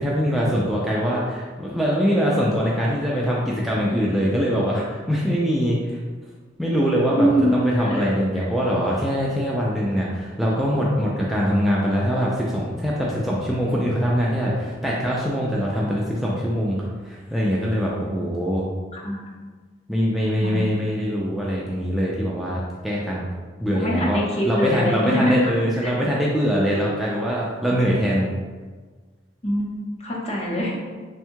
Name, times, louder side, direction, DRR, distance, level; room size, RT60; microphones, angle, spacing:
voice 1, 0.0-6.0 6.6-18.7 19.9-23.3 23.6-28.3, equal, ahead, -6 dB, 0.4 m, -23 dB
voice 2, 7.2-8.0 17.8-18.3 18.9-19.2 20.4-20.8 23.7-25.5 25.8-25.9 29.4-30.8, equal, 35° left, -3 dB, 0.8 m, -24 dB
3.5 x 2.3 x 4.4 m, 1.4 s
head